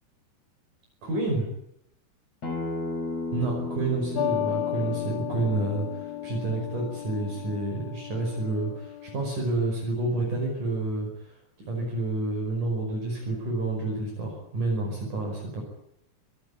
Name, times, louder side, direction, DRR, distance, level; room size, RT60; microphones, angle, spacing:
voice 1, 1.0-1.5 3.3-11.4 11.7-15.6, right 2 dB, 50° right, 0 dB, 6.7 m, -29 dB
Acoustic guitar, 2.4-7.6, left 2 dB, 40° left, 5.7 m, -36 dB
sound 1, 4.1-9.4, left 12 dB, 80° left, 1.4 m, -34 dB
24.5 x 17.5 x 9.8 m, 0.76 s
omnidirectional pair, 4.7 m